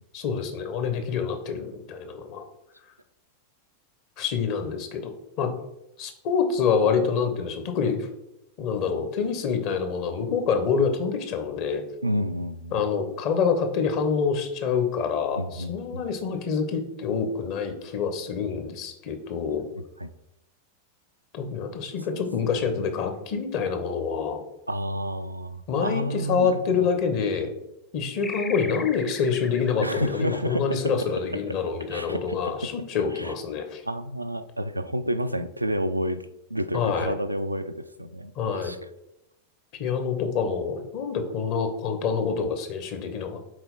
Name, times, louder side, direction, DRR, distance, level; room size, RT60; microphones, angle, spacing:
voice 1, 0.1-2.4 4.2-5.5 6.0-8.1 8.6-11.9 12.7-19.7 21.3-24.4 25.7-27.5 27.9-33.8 36.7-37.1 38.4-38.7 39.7-43.5, left 6 dB, 45° left, 7 dB, 1.0 m, -26 dB
voice 2, 12.0-12.8 15.4-16.0 20.0-20.1 22.1-22.2 24.7-26.9 29.8-30.8 31.9-32.5 33.1-33.3 33.8-36.2 36.5-38.8, equal, 85° right, 10 dB, 0.3 m, -30 dB
sound 1, 28.2-31.2, left 3 dB, 15° left, 0.6 m, -39 dB
6.1 x 4.2 x 4.0 m, 0.88 s
figure-of-eight pair, 90°, 0 cm